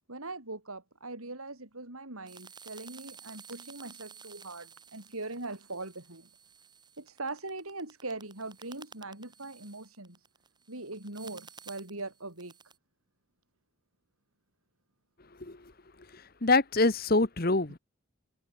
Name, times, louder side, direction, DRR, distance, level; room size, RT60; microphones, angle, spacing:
voice 1, 0.1-6.3 7.0-10.3 10.7-12.5, right 2 dB, 90° right, 5.8 m, -41 dB
sound 1, 2.3-12.8, right 6 dB, 20° right, 7.0 m, -53 dB
voice 2, 16.1-17.8, left 3 dB, 45° left, 1.3 m, -25 dB
head